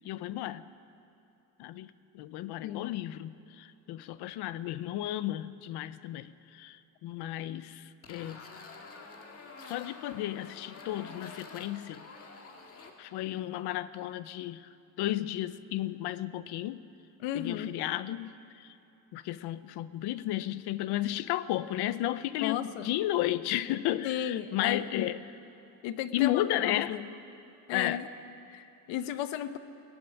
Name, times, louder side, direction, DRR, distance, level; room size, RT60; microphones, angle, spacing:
voice 1, 0.0-0.6 1.6-8.4 9.6-12.0 13.0-14.7 15.0-16.9 17.3-18.7 19.1-25.2 26.1-27.0 27.7-28.0, left 14 dB, 60° left, 15 dB, 0.8 m, -33 dB
sound 1, 8.0-12.9, left 4 dB, 30° left, 2.0 m, -48 dB
voice 2, 17.2-17.8 22.4-22.9 24.0-25.1 25.8-27.1 27.7-28.1 28.5-29.6, left 11 dB, 85° left, 11 dB, 1.1 m, -34 dB
18.5 x 15.0 x 10.0 m, 2.8 s
cardioid pair, 175°, 44 cm